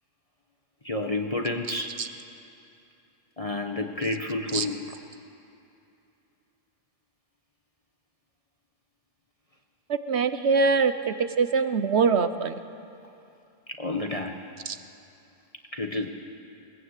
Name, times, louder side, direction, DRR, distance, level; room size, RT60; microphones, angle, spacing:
voice 1, 0.8-2.0 3.4-4.8 13.7-14.4 15.7-16.1, left 2 dB, 30° left, 2 dB, 1.2 m, -30 dB
voice 2, 9.9-12.6 14.7-14.8, right 5 dB, 60° right, 10 dB, 1.0 m, -23 dB
20.5 x 20.5 x 8.2 m, 2.7 s
omnidirectional pair, 1.3 m